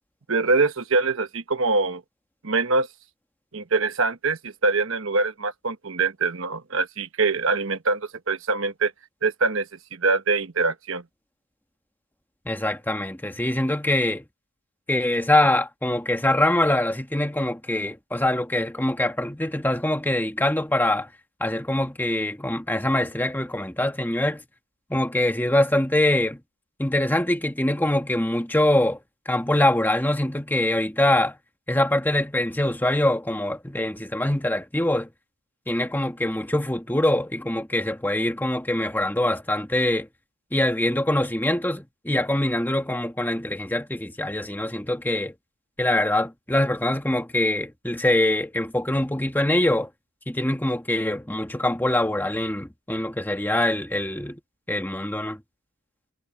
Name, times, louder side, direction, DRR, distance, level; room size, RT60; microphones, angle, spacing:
voice 1, 0.3-2.0 2.4-2.9 3.5-8.9 9.2-11.0, right 3 dB, 65° right, 1.1 m, -24 dB
voice 2, 12.4-14.2 14.9-21.1 21.4-24.4 24.9-26.4 26.8-29.0 29.2-31.3 31.7-35.1 35.7-40.1 40.5-45.3 45.8-49.9 50.3-54.4 54.7-55.4, left 1 dB, 10° left, 1.6 m, -24 dB
head